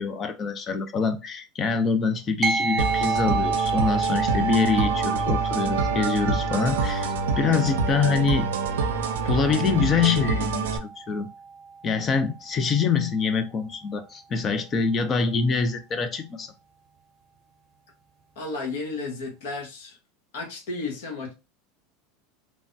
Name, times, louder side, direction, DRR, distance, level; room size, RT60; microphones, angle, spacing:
voice 1, 0.0-8.5 9.2-11.3 11.8-16.5, left 5 dB, 30° left, 0.6 m, -25 dB
sound 1, 2.4-12.1, right 4 dB, 35° right, 0.8 m, -30 dB
sound 2, 2.8-10.8, right 4 dB, 85° right, 0.5 m, -27 dB
voice 2, 18.3-20.0 20.3-21.3, left 3 dB, 75° left, 1.1 m, -33 dB
3.2 x 2.2 x 2.6 m
hypercardioid pair, 105°, 0 cm